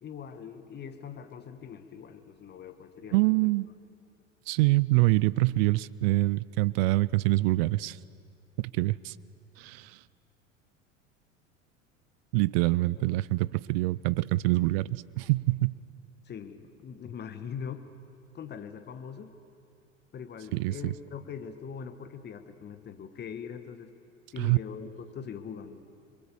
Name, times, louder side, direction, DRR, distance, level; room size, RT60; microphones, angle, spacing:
voice 1, 0.0-3.5 13.0-13.1 16.2-17.8 18.3-19.4 20.1-23.9 24.3-25.8, left 7 dB, 25° left, 9 dB, 1.5 m, -42 dB
voice 2, 3.1-3.7 4.5-8.0 8.6-9.1 9.6-10.0 12.3-15.8 20.5-20.9 24.4-24.6, right 20 dB, 50° right, 21 dB, 0.6 m, -25 dB
29.0 x 22.0 x 7.0 m, 2.5 s
figure-of-eight pair, 80°, 40 cm